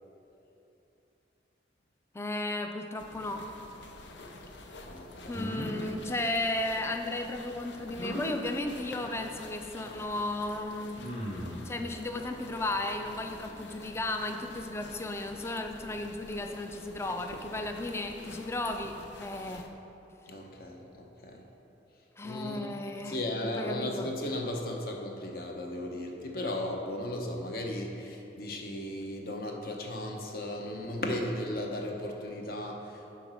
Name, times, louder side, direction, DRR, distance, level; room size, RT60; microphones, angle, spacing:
voice 1, 2.1-3.5 5.3-11.0 11.6-19.7 22.2-23.2 23.6-24.1, left 2 dB, 15° left, 5 dB, 0.4 m, -34 dB
sound 1, 3.0-19.7, left 2 dB, 80° left, 0.7 m, -48 dB
voice 2, 4.9-5.5 20.3-21.4 22.2-22.8 23.0-33.2, left 1 dB, 55° left, 2 dB, 0.8 m, -36 dB
sound 2, 5.3-5.8 8.0-8.3 9.7-9.8 11.0-11.6, equal, 35° left, 1.4 m, -36 dB
6.8 x 5.0 x 6.2 m, 2.9 s
head